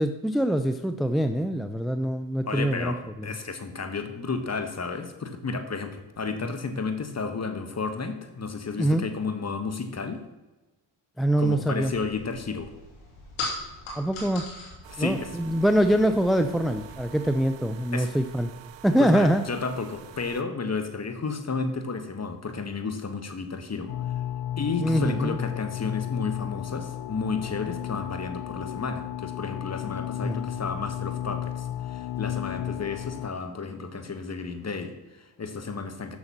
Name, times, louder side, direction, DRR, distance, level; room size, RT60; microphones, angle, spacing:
voice 1, 0.0-3.3 6.4-6.5 8.8-9.0 11.2-11.9 14.0-14.4 15.0-18.5 18.8-19.4 24.8-25.4 30.2-30.4, right 1 dB, ahead, 8 dB, 0.5 m, -24 dB
voice 2, 2.4-10.2 11.4-12.7 14.9-15.3 17.9-18.1 19.0-23.9 24.6-36.2, left 4 dB, 30° left, 7 dB, 1.4 m, -32 dB
sound 1, 11.8-17.3, left 2 dB, 80° left, 2.7 m, -40 dB
sound 2, 14.8-20.4, right 11 dB, 60° right, 0.9 m, -47 dB
sound 3, 23.9-33.3, left 11 dB, 55° left, 0.5 m, -33 dB
7.1 x 6.4 x 6.1 m, 1.1 s
supercardioid pair, 55°, 49 cm